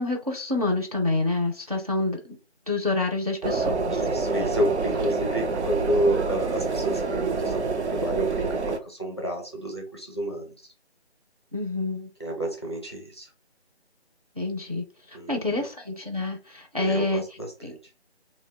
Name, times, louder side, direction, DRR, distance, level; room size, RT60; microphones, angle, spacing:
voice 1, 0.0-2.4 2.7-4.0 11.5-12.1 14.4-17.2 17.6-17.8, left 2 dB, 35° right, 2 dB, 0.4 m, -28 dB
sound 1, 3.4-8.8, right 3 dB, 85° right, 0.6 m, -27 dB
voice 2, 3.9-10.5 12.2-13.3 15.1-15.7 16.8-17.7, right 1 dB, 25° left, 0 dB, 0.5 m, -29 dB
2.6 x 2.1 x 3.9 m, 0.32 s
figure-of-eight pair, 155°, 33 cm